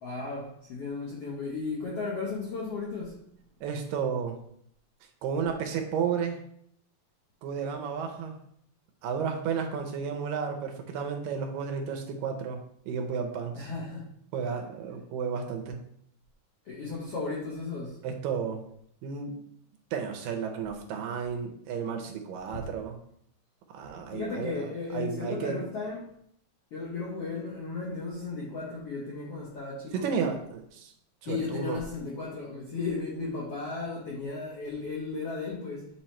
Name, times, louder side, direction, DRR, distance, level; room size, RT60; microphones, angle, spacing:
voice 1, 0.0-3.2 13.5-14.1 16.6-18.0 22.5-22.6 24.1-26.0 26.7-30.1 31.3-35.9, left 4 dB, 75° left, -4 dB, 1.3 m, -35 dB
voice 2, 3.6-4.4 5.2-6.4 7.4-8.4 9.0-12.6 12.9-13.7 14.3-15.8 18.0-18.6 19.0-19.4 19.9-23.0 23.7-25.6 29.9-30.9 31.2-31.8, right 6 dB, 80° right, 4 dB, 2.2 m, -32 dB
7.5 x 3.0 x 4.3 m, 0.68 s
omnidirectional pair, 4.2 m